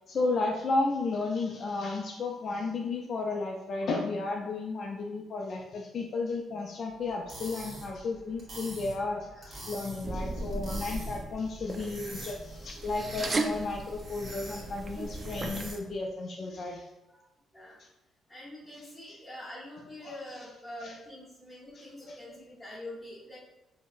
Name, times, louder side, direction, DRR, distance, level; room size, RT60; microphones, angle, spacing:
voice 1, 0.1-16.9 18.8-19.2 20.8-20.9 21.7-22.4, left 3 dB, 55° left, 0 dB, 0.3 m, -33 dB
sound 1, 7.1-16.0, right 1 dB, 55° right, 1.0 m, -45 dB
sound 2, 10.0-15.7, right 2 dB, 35° right, 0.3 m, -36 dB
voice 2, 18.3-23.4, left 1 dB, ahead, -8 dB, 1.0 m, -45 dB
3.7 x 2.0 x 2.5 m, 0.99 s
cardioid pair, 90°, 0 cm